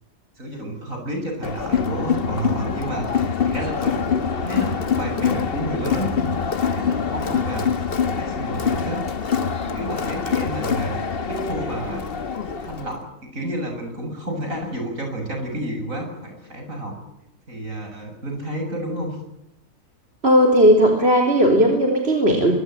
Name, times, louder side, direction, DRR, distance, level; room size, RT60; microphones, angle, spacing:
voice 1, 0.4-4.0 4.3-6.3 6.7-9.0 9.6-12.0 12.6-16.9 17.5-19.2, right 1 dB, 55° right, 3 dB, 7.5 m, -30 dB
Crowd, 1.4-13.0, left 6 dB, 40° left, 1.3 m, -24 dB
voice 2, 20.2-22.5, equal, 40° right, 1 dB, 4.0 m, -16 dB
25.0 x 23.5 x 9.2 m, 0.83 s
omnidirectional pair, 1.7 m